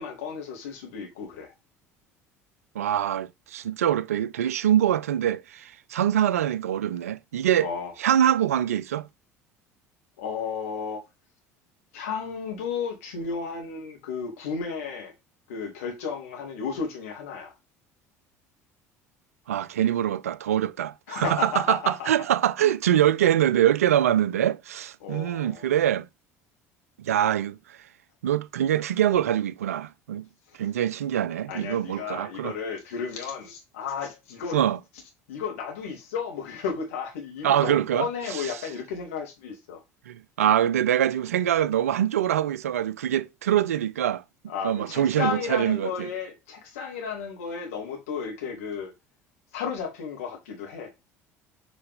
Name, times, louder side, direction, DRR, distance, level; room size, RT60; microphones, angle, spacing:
voice 1, 0.0-1.5 7.6-7.9 10.2-11.0 11.9-15.1 15.5-17.5 21.1-22.1 25.0-25.7 31.5-34.6 35.3-39.8 44.5-48.9 49.5-50.9, left 6 dB, 70° left, 2.6 m, -33 dB
voice 2, 2.8-7.7 8.0-9.1 19.5-26.1 27.0-27.6 28.2-30.3 30.6-32.6 34.5-34.8 37.4-38.5 40.1-44.2 44.6-46.1, right 11 dB, 75° right, 0.4 m, -24 dB
7.8 x 4.9 x 3.7 m
figure-of-eight pair, 60°, 8 cm